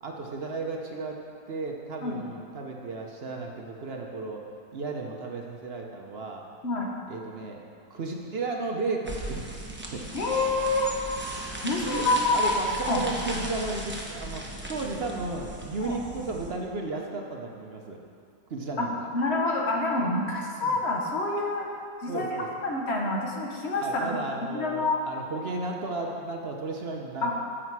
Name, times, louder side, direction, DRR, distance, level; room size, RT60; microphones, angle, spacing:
voice 1, 0.0-1.2 1.5-4.4 4.7-6.4 7.1-7.6 7.9-9.6 9.9-10.1 11.8-14.4 14.7-18.0 18.5-19.1 20.6-20.8 22.1-22.5 23.8-27.3, right 3 dB, 50° right, 1 dB, 0.8 m, -34 dB
sound 1, 9.1-16.5, right 1 dB, 10° right, 0.8 m, -37 dB
voice 2, 10.1-10.9 11.6-12.5 12.9-13.0 15.8-16.0 18.8-18.9 19.1-21.7 22.0-22.4 22.6-25.0 27.2-27.3, left 2 dB, 45° left, 0 dB, 1.2 m, -27 dB
10.0 x 7.6 x 4.7 m, 2.3 s
omnidirectional pair, 1.8 m